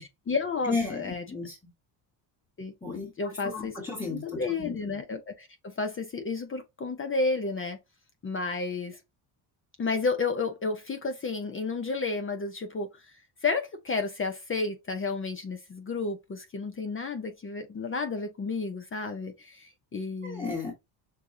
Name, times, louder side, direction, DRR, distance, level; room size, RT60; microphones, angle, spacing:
voice 1, 0.0-1.2 2.6-2.7 3.2-3.8 4.1-7.8 8.2-9.0 9.8-13.1 13.4-20.5, left 4 dB, 25° left, 0.8 m, -31 dB
voice 2, 0.6-1.6 2.8-4.7 20.2-20.7, left 4 dB, 10° left, 1.4 m, -34 dB
6.8 x 2.4 x 2.7 m
cardioid pair, 125°, 48 cm